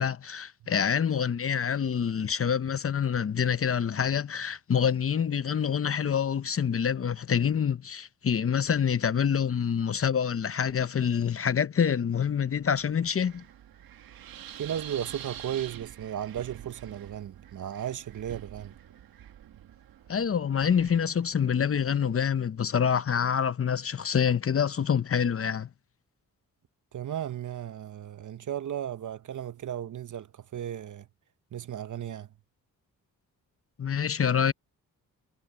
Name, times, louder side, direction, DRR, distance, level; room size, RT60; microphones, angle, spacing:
voice 1, 0.0-13.4 20.1-25.7 33.8-34.5, left 7 dB, 40° left, 0.8 m, -26 dB
Wind, 12.0-22.1, right 10 dB, 85° right, 1.6 m, -47 dB
voice 2, 14.6-18.8 26.9-31.1 31.5-32.3, right 10 dB, 60° right, 0.9 m, -35 dB
cardioid pair, 75°, 34 cm